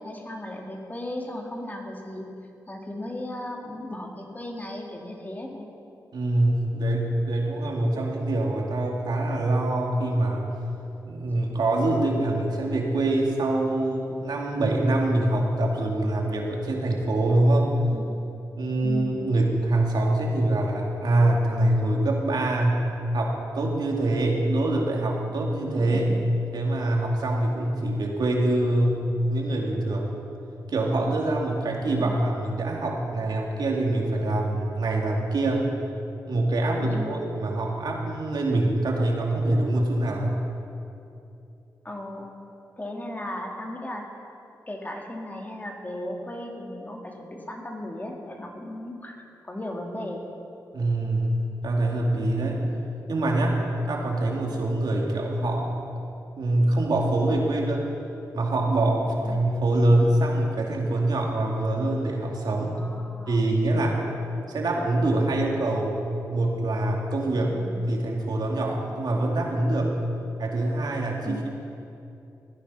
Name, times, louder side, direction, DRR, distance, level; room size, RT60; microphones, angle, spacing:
voice 1, 0.0-2.2 2.7-5.7 17.8-18.1 18.8-19.2 36.8-37.2 41.8-42.3 42.8-44.1 44.7-50.2 59.2-59.4 62.7-63.5 71.3-71.5, left 1 dB, 25° left, 1 dB, 2.4 m, -36 dB
voice 2, 6.1-10.4 11.0-17.7 18.6-26.1 26.5-30.1 30.7-35.7 36.3-40.4 50.7-52.7 53.1-53.6 53.9-55.7 56.4-57.9 58.3-62.8 63.3-64.1 64.5-65.9 66.3-67.6 67.9-70.0 70.4-71.5, right 1 dB, 70° right, -1 dB, 2.4 m, -24 dB
16.0 x 10.0 x 5.6 m, 2.7 s
cardioid pair, 50°, 7 cm